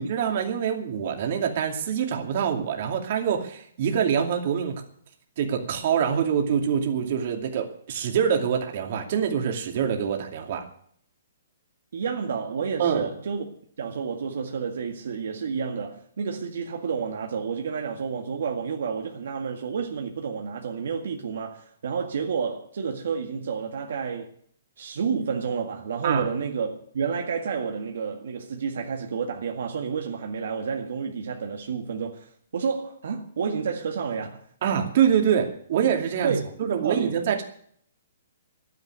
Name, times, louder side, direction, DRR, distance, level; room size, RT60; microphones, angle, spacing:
voice 1, 0.0-4.8 5.4-10.6 12.8-13.1 26.0-26.3 34.6-37.4, right 8 dB, 50° right, 2.5 m, -25 dB
voice 2, 11.9-13.4 13.8-24.3 24.8-34.4 36.2-37.2, right 6 dB, 70° right, 1.9 m, -30 dB
12.0 x 9.8 x 9.5 m
hypercardioid pair, 160°, 0 cm